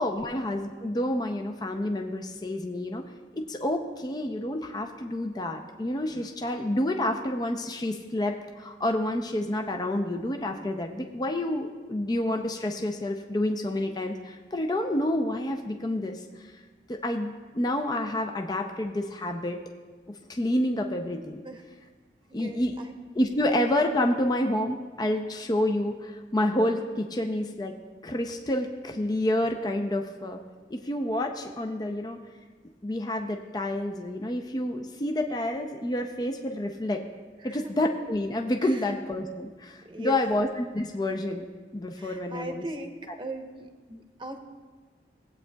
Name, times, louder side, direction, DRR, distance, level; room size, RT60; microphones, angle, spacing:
voice 1, 0.0-3.0 3.4-16.5 16.9-19.6 20.3-21.4 22.3-22.7 23.2-27.7 28.0-30.4 30.7-32.2 32.8-37.0 37.4-41.4 41.7-42.6, left 1 dB, 25° left, 4 dB, 0.5 m, -29 dB
voice 2, 22.3-22.9 37.4-37.7 38.6-38.9 39.8-40.2 41.9-44.4, right 1 dB, 25° right, 4 dB, 0.8 m, -39 dB
18.5 x 8.4 x 2.3 m, 1.4 s
head